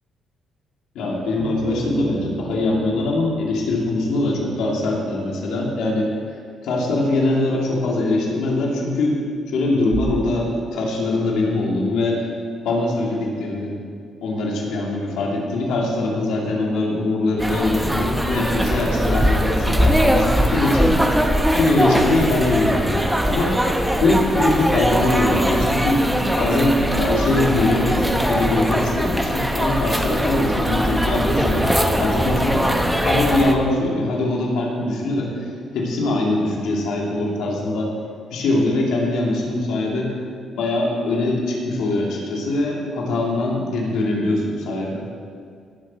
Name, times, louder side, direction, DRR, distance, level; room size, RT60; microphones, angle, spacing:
voice 1, 0.9-6.1 6.6-9.2 9.5-12.3 12.6-13.8 14.2-21.0 21.5-23.6 24.0-26.0 26.3-37.9 38.3-40.1 40.6-45.0, left 2 dB, 85° left, -2 dB, 2.5 m, -22 dB
Bass guitar, 1.4-4.9, right 4 dB, 75° right, 2.7 m, -35 dB
Bass drum, 9.9-11.6, right 4 dB, 45° right, 0.7 m, -33 dB
sound 1, 17.4-33.5, equal, 5° right, 1.0 m, -21 dB
17.5 x 7.4 x 4.3 m, 2.2 s
cardioid pair, 90°, 0 cm